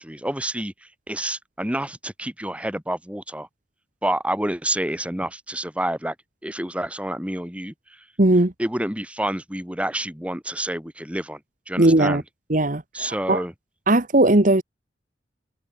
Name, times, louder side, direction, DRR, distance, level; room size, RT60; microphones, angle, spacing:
voice 1, 0.0-3.5 4.0-6.1 6.4-8.1 8.6-11.4 11.7-12.2 12.9-13.5, right 1 dB, 5° right, 2.8 m, -28 dB
voice 2, 8.2-8.5 11.8-12.2 12.5-13.4 13.9-14.6, right 1 dB, 45° right, 1.5 m, -18 dB
head